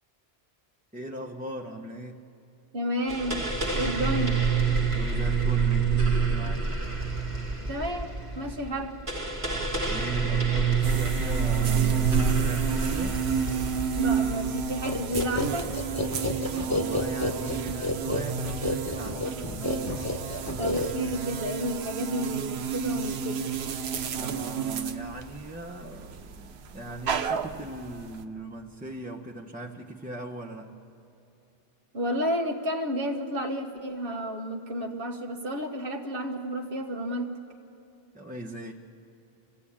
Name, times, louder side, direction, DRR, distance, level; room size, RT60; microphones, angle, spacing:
voice 1, 0.9-2.2 4.9-6.7 9.8-13.3 16.6-20.2 24.1-30.7 38.1-38.7, right 1 dB, 10° right, -3 dB, 0.7 m, -39 dB
voice 2, 2.7-3.4 3.7-4.4 7.7-9.0 13.9-15.8 20.6-23.4 31.9-37.3, equal, 60° right, 2 dB, 1.3 m, -31 dB
sound 1, 3.1-15.2, right 5 dB, 30° right, 1.3 m, -27 dB
sound 2, 10.8-28.2, right 6 dB, 85° right, 1.0 m, -32 dB
sound 3, 14.8-21.3, left 2 dB, 15° left, 1.2 m, -30 dB
25.0 x 16.0 x 8.6 m, 2.7 s
omnidirectional pair, 1.1 m